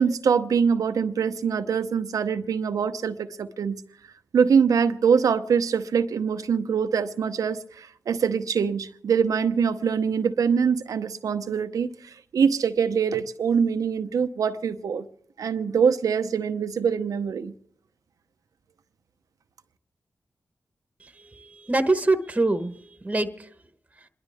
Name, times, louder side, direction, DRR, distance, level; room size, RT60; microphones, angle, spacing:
voice 1, 0.0-3.8 4.3-15.1 15.4-17.5, right 6 dB, 85° right, 0.8 m, -24 dB
voice 2, 21.0-23.5, right 2 dB, 25° right, 1.2 m, -25 dB
27.5 x 11.5 x 3.5 m
cardioid pair, 55°, 6 cm